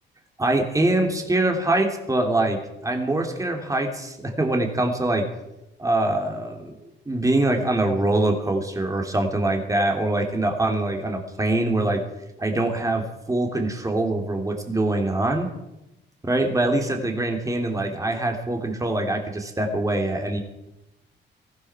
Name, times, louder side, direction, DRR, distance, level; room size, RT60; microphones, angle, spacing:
voice 1, 0.4-5.3 5.8-6.8 7.1-12.0 12.4-15.5 16.3-20.4, right 2 dB, 15° right, 3 dB, 2.8 m, -24 dB
18.5 x 15.0 x 4.8 m, 0.92 s
cardioid pair, 90°, 20 cm